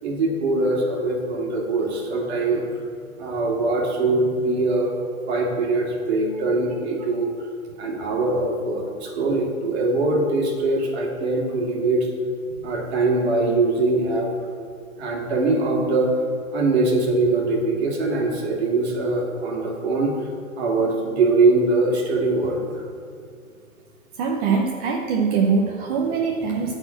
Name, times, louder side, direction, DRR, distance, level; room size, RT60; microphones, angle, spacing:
voice 1, 0.0-2.8 3.2-4.9 5.3-7.3 7.8-12.1 12.6-14.3 15.0-16.1 16.5-20.1 20.6-22.8, right 2 dB, 50° right, -1 dB, 2.4 m, -22 dB
voice 2, 24.2-26.8, right 5 dB, 30° right, -1 dB, 0.7 m, -22 dB
9.5 x 4.4 x 7.6 m, 2.2 s
hypercardioid pair, 130°, 42 cm